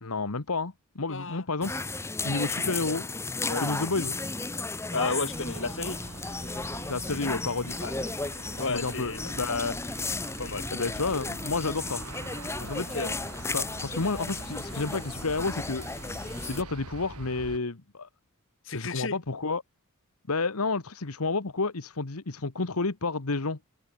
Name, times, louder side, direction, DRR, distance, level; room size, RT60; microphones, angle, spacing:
voice 1, 0.0-1.8 2.2-3.1 3.6-4.2 6.8-7.8 8.5-9.8 10.7-12.0 12.6-12.9 13.5-15.9 16.4-18.1 18.7-19.6 20.3-23.6, left 3 dB, 80° left, 1.4 m, -30 dB
voice 2, 1.1-1.5 3.5-3.7 4.9-6.0 7.8-7.9 8.6-9.2 10.4-10.7 12.9-13.2 18.6-19.2, left 3 dB, 60° left, 4.4 m, -32 dB
sound 1, 1.6-16.6, left 3 dB, 10° left, 0.9 m, -34 dB
Aircraft, 5.3-17.6, right 2 dB, 85° right, 2.6 m, -44 dB
head